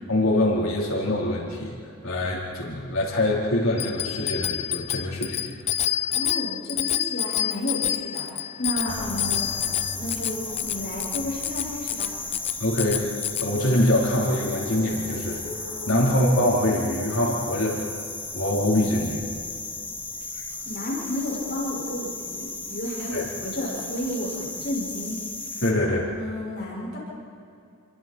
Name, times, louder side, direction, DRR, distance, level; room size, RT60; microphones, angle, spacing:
voice 1, 0.1-1.7 2.0-5.4 5.9-6.0 12.6-17.8 18.3-19.2 23.1-23.3 25.6-26.1, left 1 dB, 70° left, -3 dB, 4.4 m, -24 dB
Bicycle bell, 3.8-13.5, left 11 dB, 30° left, 0.4 m, -28 dB
voice 2, 6.1-9.5 9.8-12.1 15.9-16.1 20.6-25.2 26.1-27.0, left 1 dB, 50° left, -4 dB, 6.3 m, -32 dB
sound 1, 8.9-25.7, left 2 dB, 10° left, 1.6 m, -35 dB
29.0 x 23.0 x 4.7 m, 2.4 s
head